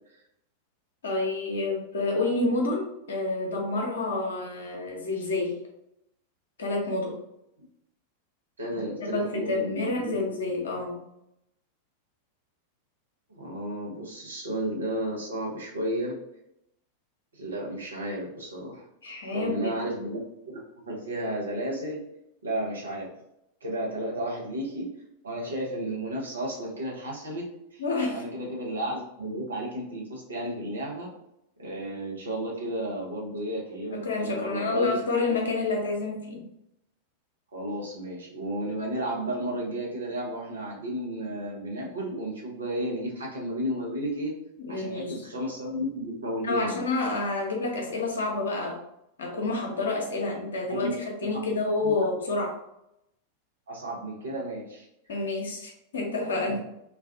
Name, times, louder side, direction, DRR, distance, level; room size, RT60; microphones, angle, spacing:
voice 1, 1.0-5.6 6.6-7.2 8.8-8.9 9.1-11.0 19.0-19.8 27.8-28.2 33.9-36.4 44.6-45.2 46.4-48.8 49.2-52.5 55.1-56.6, left 3 dB, 65° left, 0 dB, 0.6 m, -29 dB
voice 2, 8.6-10.2 10.4-10.5 13.3-16.1 17.3-18.9 19.3-20.2 20.5-20.6 20.8-22.0 22.4-23.1 23.6-24.9 25.2-27.8 28.1-31.1 31.6-35.0 35.3-35.4 37.5-44.3 44.7-46.8 50.7-50.9 51.3-52.0 53.7-55.2 56.5-56.6, right 1 dB, 70° right, -2 dB, 0.7 m, -33 dB
2.4 x 2.3 x 2.3 m, 0.82 s
figure-of-eight pair, 90°, 0 cm